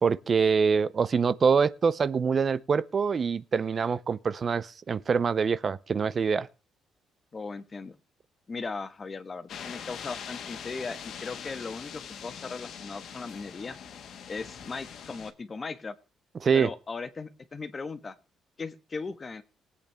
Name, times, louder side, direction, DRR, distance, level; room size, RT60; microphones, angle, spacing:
voice 1, 0.0-6.5 16.4-16.7, right 5 dB, 45° right, 0.6 m, -25 dB
voice 2, 7.3-8.0 8.5-13.8 14.3-16.0 16.5-18.2 18.6-19.4, left 4 dB, 35° left, 1.3 m, -38 dB
sound 1, 9.5-15.3, left 7 dB, 70° left, 1.4 m, -42 dB
19.0 x 8.3 x 3.4 m
cardioid pair, 90°, 0 cm